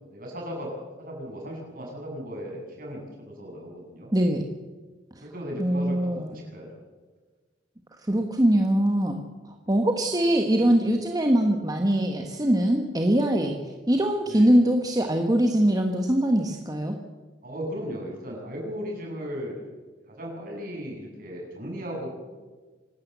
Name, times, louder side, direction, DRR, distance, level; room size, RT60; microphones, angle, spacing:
voice 1, 0.1-0.7 1.0-4.1 5.2-6.7 9.6-9.8 14.3-14.6 17.4-19.6 20.1-22.1, equal, 55° right, -1 dB, 7.6 m, -36 dB
voice 2, 4.1-4.5 5.6-6.4 8.1-9.2 9.5-17.0, right 1 dB, 20° right, 3 dB, 1.4 m, -22 dB
26.5 x 12.5 x 8.2 m, 1.3 s
head